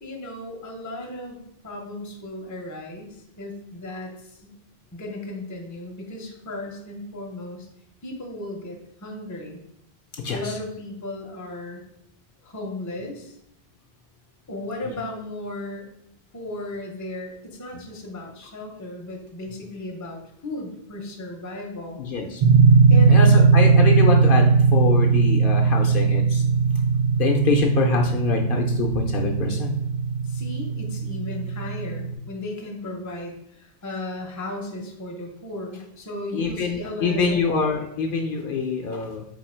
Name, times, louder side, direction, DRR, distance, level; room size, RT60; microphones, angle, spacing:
voice 1, 0.0-4.5 4.9-7.7 8.0-9.6 10.3-11.8 12.4-13.4 14.5-15.9 16.3-22.0 22.9-23.3 30.2-37.4, left 1 dB, 20° left, 0 dB, 0.6 m, -35 dB
voice 2, 10.2-10.6 22.0-22.4 23.1-26.4 27.2-29.7 36.3-39.2, left 5 dB, 65° left, 2 dB, 0.7 m, -25 dB
sound 1, 22.4-32.1, right 5 dB, 50° right, 0.4 m, -18 dB
3.8 x 2.7 x 4.2 m, 0.77 s
omnidirectional pair, 1.0 m